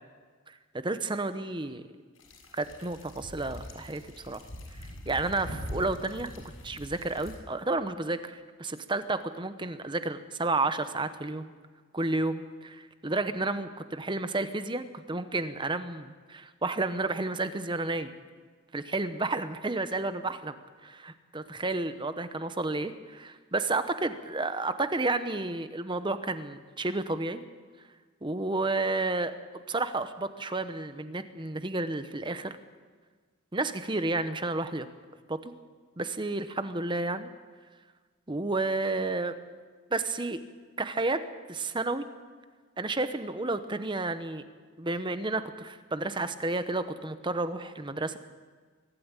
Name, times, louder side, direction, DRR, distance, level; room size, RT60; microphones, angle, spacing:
voice 1, 0.5-1.8 2.5-4.4 4.8-6.3 6.6-11.5 11.9-18.1 18.7-20.5 20.8-27.4 28.2-29.3 29.7-32.6 33.5-34.9 35.3-35.5 36.0-37.3 38.3-39.3 39.9-40.4 40.8-41.2 41.5-42.1 42.8-44.4 44.8-48.2, right 2 dB, 20° right, 11 dB, 1.0 m, -31 dB
sound 1, 2.2-7.4, equal, 80° left, 6.3 m, -43 dB
23.5 x 13.0 x 8.9 m, 1.5 s
head